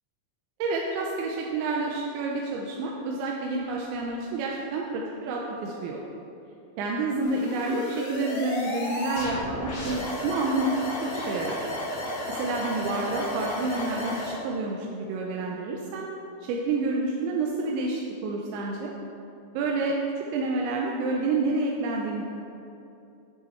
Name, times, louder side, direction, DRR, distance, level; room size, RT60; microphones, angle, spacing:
voice 1, 0.6-6.0 6.8-10.8 11.0-11.7 12.3-16.1 16.4-18.9 19.5-19.9 20.3-22.3, right 3 dB, 85° right, -1 dB, 3.0 m, -29 dB
sound 1, 7.2-14.4, left 1 dB, 55° left, 2.3 m, -33 dB
9.5 x 8.6 x 4.6 m, 2.7 s
omnidirectional pair, 5.4 m